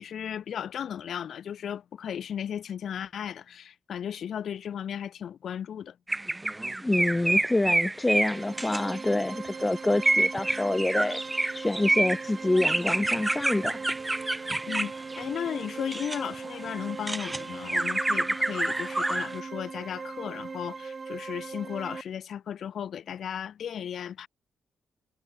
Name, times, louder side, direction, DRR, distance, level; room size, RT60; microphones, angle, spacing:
voice 1, 0.0-6.0 14.7-24.3, left 9 dB, 55° left, 1.9 m, -35 dB
sound 1, 6.1-9.3 9.9-16.2 16.7-19.3, right 2 dB, 10° right, 1.1 m, -28 dB
voice 2, 6.8-11.2 11.5-13.8, left 2 dB, 10° left, 0.4 m, -27 dB
sound 2, 7.9-22.0, right 4 dB, 25° right, 1.3 m, -40 dB
wide cardioid pair, 165°, 0 cm